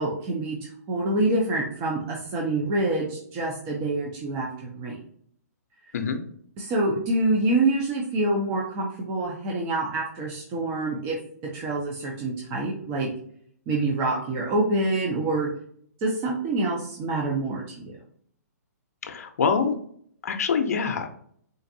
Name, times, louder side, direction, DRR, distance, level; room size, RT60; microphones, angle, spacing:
voice 1, 0.0-5.0 6.6-11.2 11.4-13.1 13.7-15.5 16.0-17.9, right 2 dB, 30° right, -2 dB, 0.7 m, -26 dB
voice 2, 19.0-19.7 20.2-21.1, left 6 dB, 65° left, 7 dB, 0.6 m, -25 dB
3.9 x 2.5 x 2.6 m, 0.63 s
hypercardioid pair, 135°, 9 cm